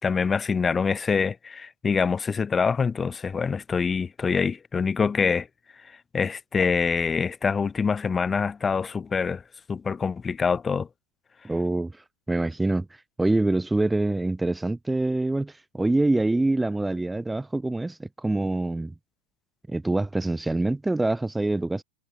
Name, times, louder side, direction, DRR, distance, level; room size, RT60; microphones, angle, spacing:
voice 1, 0.0-5.5 6.1-9.4 9.7-10.9, left 5 dB, 15° left, 2.7 m, -25 dB
voice 2, 11.4-11.9 12.3-12.9 13.2-18.9 19.7-21.8, right 2 dB, 5° right, 2.4 m, -25 dB
figure-of-eight pair, 90°, 0 cm